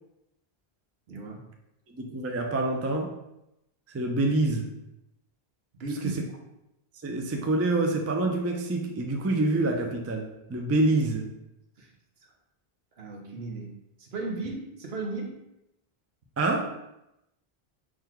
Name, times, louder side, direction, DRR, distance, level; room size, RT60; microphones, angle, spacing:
voice 1, 1.1-1.5 5.7-6.2 11.8-11.9 13.0-15.4, right 3 dB, 80° right, 1 dB, 1.1 m, -36 dB
voice 2, 1.9-3.1 3.9-4.7 6.0-6.2 7.0-11.3 16.4-16.7, right 2 dB, 25° right, 3 dB, 0.3 m, -26 dB
3.9 x 3.1 x 4.4 m, 0.87 s
omnidirectional pair, 1.0 m